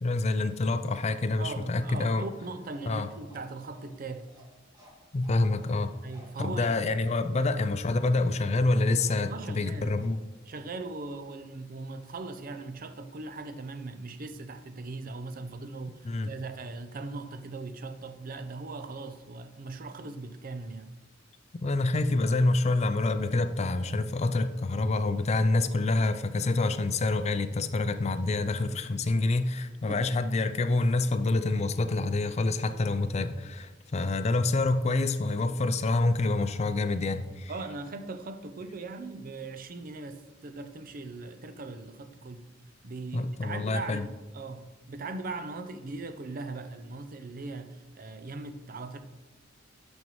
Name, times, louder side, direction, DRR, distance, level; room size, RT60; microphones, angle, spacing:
voice 1, 0.0-2.2 2.9-3.1 5.1-5.9 6.4-10.2 16.0-16.3 21.6-37.5 43.1-44.1, left 2 dB, 35° left, 0.4 m, -27 dB
voice 2, 1.4-4.3 6.0-6.8 7.3-7.4 9.3-10.0 10.4-20.9 29.9-30.0 37.5-42.5 42.8-49.0, right 3 dB, 45° right, 0.5 m, -39 dB
Bark, 2.7-9.7 10.0-10.2, equal, 20° right, 1.7 m, -57 dB
12.0 x 5.3 x 3.1 m
head